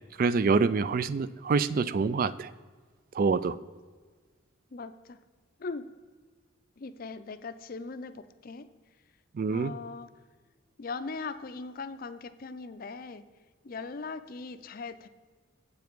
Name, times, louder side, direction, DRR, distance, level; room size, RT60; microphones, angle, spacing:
voice 1, 0.2-2.5 3.1-3.6 9.3-9.7, right 4 dB, 45° right, 16 dB, 0.3 m, -26 dB
voice 2, 4.7-5.2 5.6-5.9 6.8-8.7 9.5-10.1 10.8-13.2 13.6-15.1, left 4 dB, 45° left, 11 dB, 0.5 m, -39 dB
8.2 x 7.1 x 4.6 m, 1.5 s
head